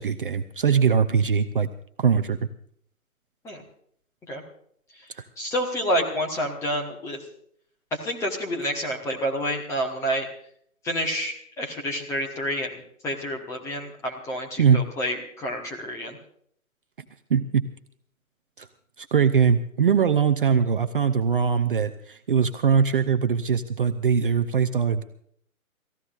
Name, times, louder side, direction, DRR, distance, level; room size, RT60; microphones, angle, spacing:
voice 1, 0.0-1.7 2.0-2.4 5.2-5.3 14.6-14.8 17.3-17.6 18.6-18.7 19.0-25.0, right 6 dB, 40° right, 9 dB, 0.7 m, -21 dB
voice 2, 5.4-7.2 7.9-10.3 10.8-12.8 13.0-16.2, equal, 5° left, 1 dB, 1.3 m, -28 dB
29.5 x 15.0 x 2.5 m, 0.65 s
figure-of-eight pair, 140°, 42 cm